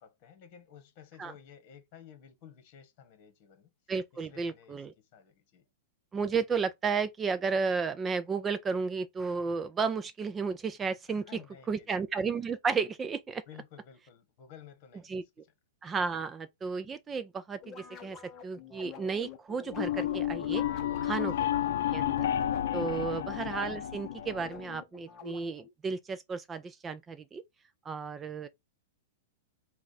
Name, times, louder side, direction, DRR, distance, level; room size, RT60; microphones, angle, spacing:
voice 1, 0.0-3.7 4.3-5.6 11.1-12.0 13.5-15.5 21.3-21.4 23.0-23.1, left 8 dB, 40° left, 1.4 m, -54 dB
voice 2, 3.9-4.9 6.1-11.2 11.7-13.4 15.1-15.2 15.8-18.2 18.4-20.6 21.0-21.6 21.9-22.3 22.7-27.4 27.9-28.5, right 5 dB, 15° right, 0.4 m, -33 dB
sound 1, 17.6-25.7, left 6 dB, 20° left, 0.9 m, -48 dB
sound 2, 19.7-24.8, left 11 dB, 70° left, 0.5 m, -31 dB
4.7 x 2.4 x 4.1 m
hypercardioid pair, 155°, 0 cm